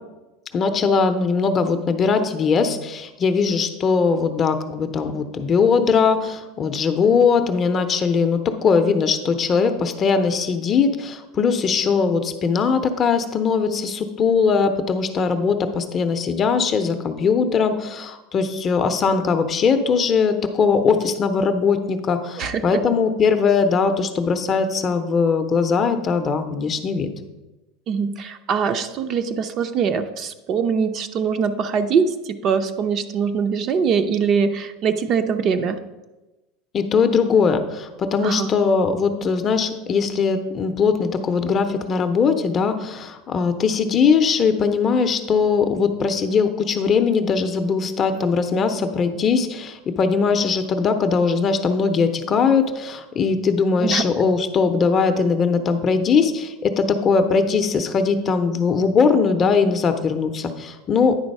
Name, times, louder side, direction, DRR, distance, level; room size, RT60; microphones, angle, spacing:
voice 1, 0.5-27.1 36.7-61.2, left 5 dB, 30° left, 7 dB, 0.6 m, -20 dB
voice 2, 27.9-35.8 38.2-38.5 53.8-54.0, right 6 dB, 35° right, 9 dB, 0.5 m, -22 dB
9.6 x 4.0 x 5.3 m, 1.1 s
supercardioid pair, 150°, 0 cm